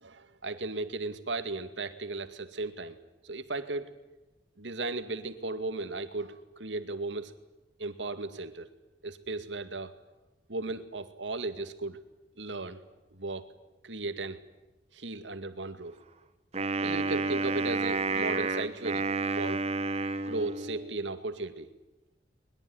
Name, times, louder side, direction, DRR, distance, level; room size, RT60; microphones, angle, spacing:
voice 1, 0.0-3.0 3.2-3.9 4.6-7.3 7.8-8.7 9.0-9.9 10.5-12.0 12.4-12.8 13.2-13.5 13.8-14.4 14.9-15.9 16.8-19.1 19.4-19.6 20.3-21.7, right 2 dB, 90° right, 9 dB, 2.3 m, -35 dB
Wind instrument woodwind instrument, 16.5-21.0, right 3 dB, 35° right, 1.4 m, -30 dB
22.0 x 21.5 x 9.5 m, 1.1 s
head